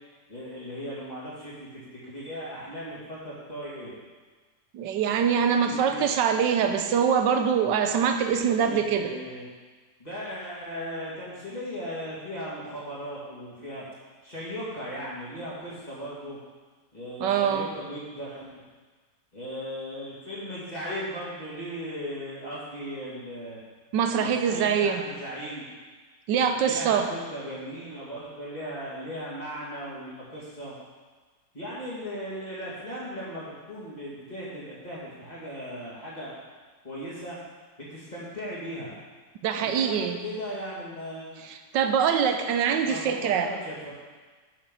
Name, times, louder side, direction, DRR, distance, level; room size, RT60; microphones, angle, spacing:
voice 1, 0.3-3.9 5.6-6.0 8.5-9.5 10.0-13.8 14.2-16.4 16.9-18.6 19.3-23.6 24.1-25.6 26.5-30.7 31.5-36.4 36.8-37.4 37.9-38.9 39.6-41.5 42.8-43.9, equal, 20° left, -8 dB, 2.7 m, -37 dB
voice 2, 4.7-9.1 17.2-17.7 23.9-25.0 26.3-27.1 39.4-40.2 41.7-43.5, right 7 dB, 80° right, 7 dB, 1.4 m, -24 dB
7.7 x 6.8 x 5.5 m, 1.4 s
omnidirectional pair, 1.9 m